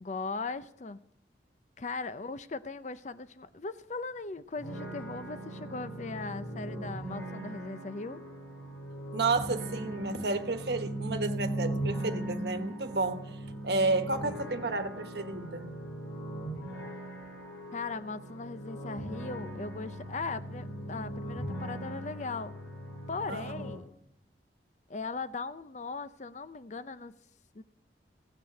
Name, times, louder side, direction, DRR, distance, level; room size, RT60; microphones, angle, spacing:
voice 1, 0.0-1.0 1.8-8.2 17.7-22.5 23.1-23.9 24.9-27.2 27.5-27.6, left 4 dB, 40° left, 0.5 m, -38 dB
sound 1, 4.6-23.8, right 1 dB, 85° left, 6.0 m, -39 dB
voice 2, 9.1-13.2 13.6-15.7 23.3-23.6, right 3 dB, 65° right, 1.2 m, -31 dB
17.0 x 6.7 x 9.1 m
head